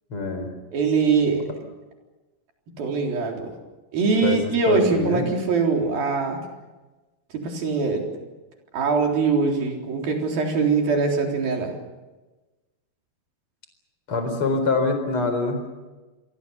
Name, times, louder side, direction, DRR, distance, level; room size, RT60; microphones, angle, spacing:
voice 1, 0.1-0.5 4.2-5.2 14.1-15.6, left 3 dB, 35° left, 7 dB, 4.8 m, -24 dB
voice 2, 0.7-1.5 2.8-3.5 3.9-6.4 7.3-8.1 8.7-11.7, right 4 dB, 70° right, 1 dB, 5.6 m, -22 dB
28.0 x 23.0 x 7.0 m, 1.2 s
omnidirectional pair, 4.4 m